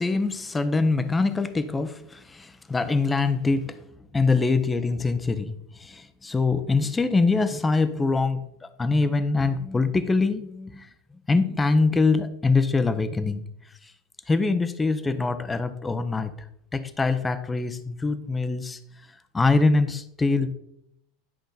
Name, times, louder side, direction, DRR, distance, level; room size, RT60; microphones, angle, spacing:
voice 1, 0.0-3.8 4.1-5.5 5.8-8.4 8.8-10.9 11.3-13.4 14.3-16.3 16.7-18.8 19.3-20.5, left 3 dB, 15° left, 10 dB, 0.8 m, -23 dB
10.5 x 5.1 x 4.0 m, 0.74 s
hypercardioid pair, 85°, 0 cm